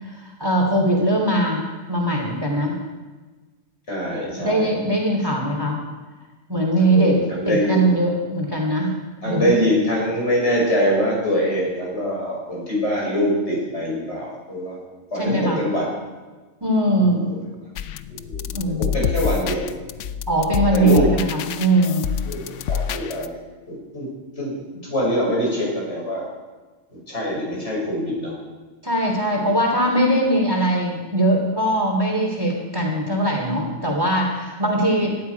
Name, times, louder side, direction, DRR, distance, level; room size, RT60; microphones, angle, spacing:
voice 1, 0.0-2.8 4.3-5.8 6.5-7.1 7.4-9.5 15.1-15.6 16.6-17.3 18.5-18.9 20.3-22.1 28.8-35.2, right 1 dB, 20° right, -1 dB, 3.2 m, -21 dB
voice 2, 3.9-4.7 6.9-7.9 9.2-14.8 15.1-15.9 17.0-17.4 18.1-18.4 18.8-19.7 20.7-21.1 22.2-23.4 23.7-24.1 24.4-24.6 24.8-26.3 26.9-28.3 29.3-29.5, equal, 70° left, -4 dB, 6.5 m, -24 dB
sound 1, 17.8-23.3, left 8 dB, 85° left, 1.0 m, -27 dB
17.5 x 12.5 x 4.7 m, 1.3 s
omnidirectional pair, 1.2 m